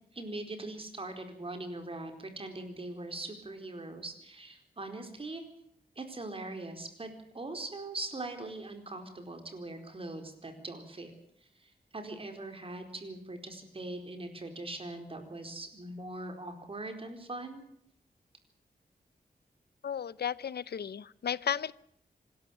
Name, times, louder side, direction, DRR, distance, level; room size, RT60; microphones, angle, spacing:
voice 1, 0.1-5.4 6.0-11.1 11.6-17.6, right 2 dB, 35° right, 6 dB, 4.4 m, -41 dB
voice 2, 19.8-21.7, left 8 dB, 85° left, 19 dB, 0.8 m, -34 dB
26.0 x 12.5 x 9.1 m, 0.70 s
wide cardioid pair, 155°, 16 cm